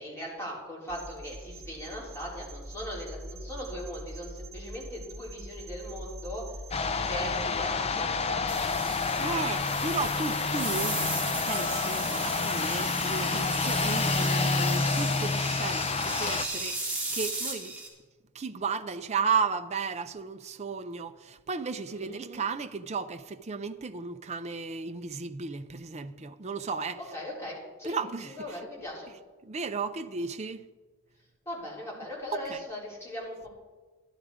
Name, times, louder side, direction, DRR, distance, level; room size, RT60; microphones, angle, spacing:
voice 1, 0.0-6.6 6.9-9.4 21.9-22.3 27.1-28.0 28.2-29.1 31.5-33.5, equal, 10° left, 4.1 m, -39 dB
sound 1, 0.9-14.3, right 1 dB, 45° right, 1.0 m, -45 dB
sound 2, 6.7-16.5, left 4 dB, 30° left, 0.5 m, -29 dB
sound 3, 8.5-17.9, right 2 dB, 5° right, 2.7 m, -35 dB
voice 2, 9.2-11.0 11.5-17.7 18.3-27.0 27.8-28.3 29.4-30.6 32.3-32.6, right 5 dB, 30° right, 0.5 m, -34 dB
12.0 x 11.5 x 4.9 m
head